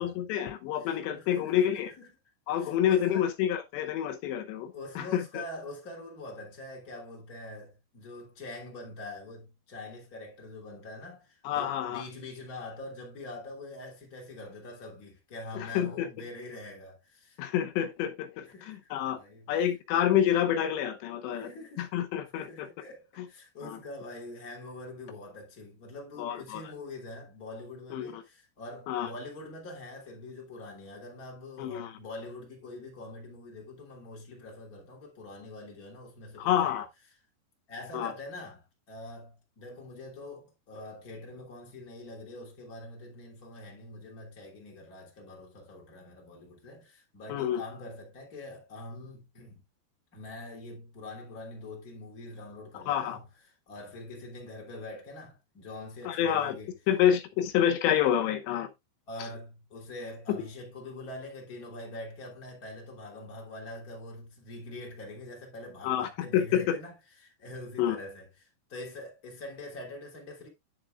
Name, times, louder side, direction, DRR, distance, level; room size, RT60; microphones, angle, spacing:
voice 1, 0.0-1.9 2.5-5.4 11.4-12.0 15.5-16.1 17.4-19.2 19.5-21.5 21.8-22.7 23.2-23.3 23.6-23.8 26.2-26.6 27.9-28.2 28.9-29.1 31.6-32.0 36.4-36.9 37.9-38.1 47.3-47.6 52.7-53.2 56.1-56.6 56.9-58.7 60.3-60.4 65.8-66.8 67.8-68.0, left 10 dB, 85° left, 3.1 m, -28 dB
voice 2, 0.8-2.1 2.6-3.3 4.7-17.4 18.4-19.6 21.3-21.9 22.2-36.7 37.7-49.6 50.1-53.2 53.7-56.7 59.1-66.9 67.2-70.5, left 2 dB, 25° left, 2.8 m, -44 dB
10.5 x 7.4 x 2.4 m
omnidirectional pair, 5.0 m